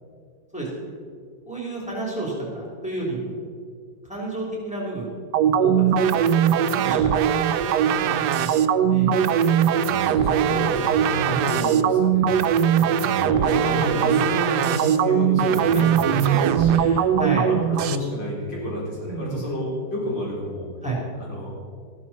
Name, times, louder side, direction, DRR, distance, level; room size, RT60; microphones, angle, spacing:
voice 1, 1.5-3.4 4.0-5.1 5.6-6.2 6.8-7.4 8.0-9.1 11.2-11.4 16.7-17.5 19.0-19.4 20.8-21.0, right 2 dB, 5° right, -5 dB, 3.2 m, -31 dB
sound 1, 5.3-18.0, right 8 dB, 75° right, 1.1 m, -20 dB
voice 2, 9.4-12.2 12.8-17.0 17.5-20.7 21.1-21.5, equal, 85° left, -5 dB, 4.5 m, -30 dB
14.5 x 12.0 x 4.3 m, 2.1 s
omnidirectional pair, 1.9 m